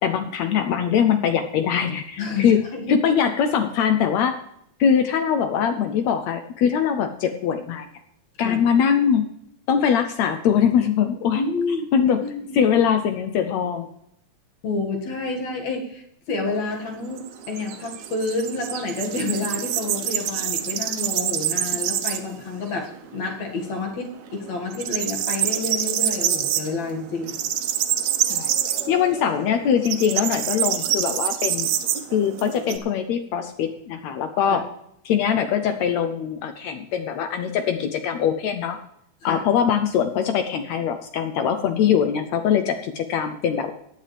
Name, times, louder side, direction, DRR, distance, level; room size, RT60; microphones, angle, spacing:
voice 1, 0.0-2.6 2.9-4.4 4.8-7.9 8.4-9.3 9.7-11.4 11.9-12.2 12.5-13.9 28.3-28.5 28.9-31.7 32.1-34.6 35.0-38.8 39.2-43.7, left 8 dB, 75° left, 8 dB, 1.6 m, -22 dB
voice 2, 2.2-3.0 8.4-8.6 11.3-11.9 12.2-12.6 14.6-27.3 34.5-34.6 39.2-39.4, left 3 dB, 60° left, 1 dB, 3.0 m, -29 dB
sound 1, 16.5-22.4 22.7-22.8 23.2-24.0 24.3-32.8, right 11 dB, 70° right, 1.8 m, -26 dB
16.0 x 10.5 x 3.3 m, 0.76 s
omnidirectional pair, 3.8 m